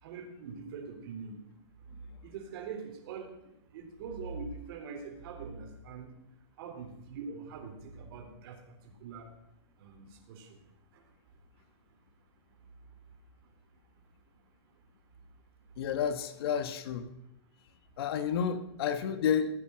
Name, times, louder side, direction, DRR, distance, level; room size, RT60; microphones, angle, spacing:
voice 1, 0.0-1.4 2.2-3.3 3.7-6.1 6.6-8.6 9.0-9.3 9.8-10.5, right 5 dB, 55° right, 2 dB, 3.8 m, -43 dB
voice 2, 15.8-17.1 18.0-19.5, left 7 dB, 60° left, 10 dB, 1.4 m, -30 dB
16.5 x 8.8 x 6.4 m, 0.82 s
hypercardioid pair, 145°, 14 cm